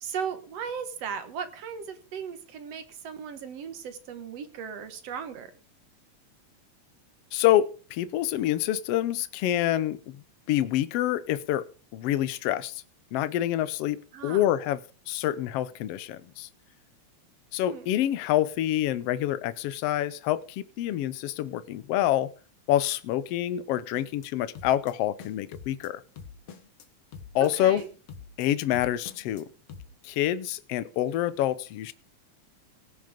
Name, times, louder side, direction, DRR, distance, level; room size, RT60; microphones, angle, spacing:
voice 1, 0.0-5.5 14.1-14.4 17.6-17.9 27.4-27.9, right 7 dB, 60° right, 9 dB, 2.2 m, -37 dB
voice 2, 7.3-11.6 11.9-12.8 13.1-14.0 14.2-14.8 15.1-16.5 17.5-22.3 22.7-26.0 27.3-27.8 28.4-29.5 30.0-31.9, left 12 dB, 70° left, 15 dB, 1.5 m, -27 dB
sound 1, 23.9-24.3 24.5-24.9 25.2-25.9 26.2-26.9 27.1-27.5 27.8-28.5 28.7-29.4 29.7-29.9, left 6 dB, 55° left, 2.2 m, -45 dB
19.0 x 6.7 x 5.1 m, 0.38 s
omnidirectional pair, 3.5 m